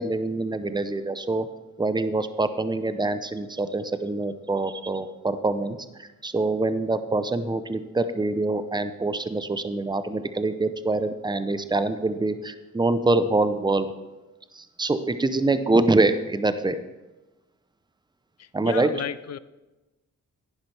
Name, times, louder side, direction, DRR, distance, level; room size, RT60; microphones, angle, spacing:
voice 1, 0.0-1.5 1.8-13.9 14.5-16.8 18.5-18.9, right 2 dB, 15° right, 11 dB, 0.6 m, -25 dB
voice 2, 18.4-19.4, left 9 dB, 55° left, 17 dB, 0.5 m, -34 dB
10.5 x 10.0 x 3.4 m, 1.1 s
cardioid pair, 90°, 31 cm